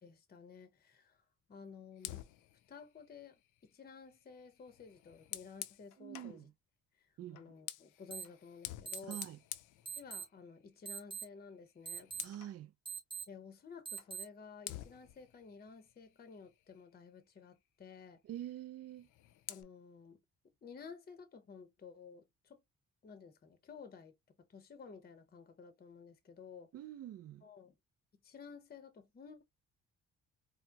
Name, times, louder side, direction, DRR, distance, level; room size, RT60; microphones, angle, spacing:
voice 1, 0.0-1.2 1.5-2.2 2.7-6.5 7.0-9.2 9.9-12.1 13.3-18.2 19.5-20.2 20.6-22.6 23.0-26.7 27.4-27.7 28.2-29.4, left 5 dB, 30° left, 0.7 m, -53 dB
Fire, 2.0-6.4 7.3-10.6 10.9-11.2 11.5-12.6 14.0-14.1 14.6-17.0 18.8-19.6, left 14 dB, 85° left, 0.5 m, -50 dB
voice 2, 6.0-6.5 7.2-7.4 9.1-9.4 12.2-12.7 18.2-19.1 26.7-27.4, right 12 dB, 55° right, 0.5 m, -46 dB
sound 1, 8.1-8.2 8.8-9.2 9.8-10.2 10.8-11.2 11.8-12.2 12.8-13.2 13.8-14.2, right 6 dB, 15° right, 1.3 m, -42 dB
4.2 x 2.0 x 2.3 m
cardioid pair, 90°, 30 cm